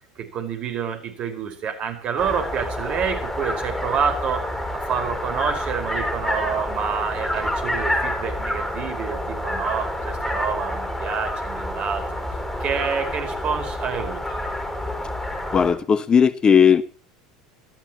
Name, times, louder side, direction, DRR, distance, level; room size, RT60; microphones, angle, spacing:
voice 1, 0.2-4.4 4.7-12.0 12.6-14.4, right 7 dB, 45° right, 6 dB, 5.1 m, -28 dB
sound 1, 2.2-15.7, left 1 dB, 10° left, 5.4 m, -28 dB
voice 2, 15.5-16.8, left 7 dB, 30° left, 14 dB, 1.1 m, -16 dB
25.0 x 14.5 x 3.1 m, 0.39 s
figure-of-eight pair, 75°, 3 cm